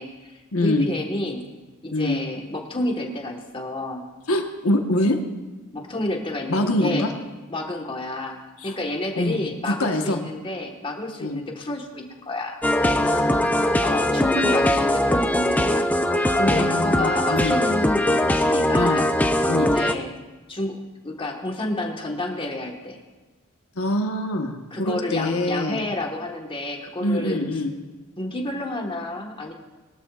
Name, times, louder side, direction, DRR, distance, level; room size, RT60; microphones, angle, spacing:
voice 1, 0.0-1.4 1.8-4.0 5.7-7.1 7.5-12.6 13.8-19.1 19.6-20.1 20.5-20.8 21.0-23.0 24.7-27.4 28.2-29.5, left 1 dB, 25° left, 1 dB, 1.5 m, -30 dB
voice 2, 0.5-0.9 1.9-2.2 4.3-5.2 6.5-7.1 8.6-8.7 9.2-9.4 9.6-10.2 11.2-11.4 13.0-13.9 16.4-17.6 18.7-19.0 19.5-19.7 23.7-25.8 27.0-27.7, left 1 dB, 75° left, 3 dB, 1.3 m, -24 dB
sound 1, 12.6-19.9, left 1 dB, 5° left, 0.5 m, -21 dB
21.0 x 12.5 x 2.5 m, 1.2 s
head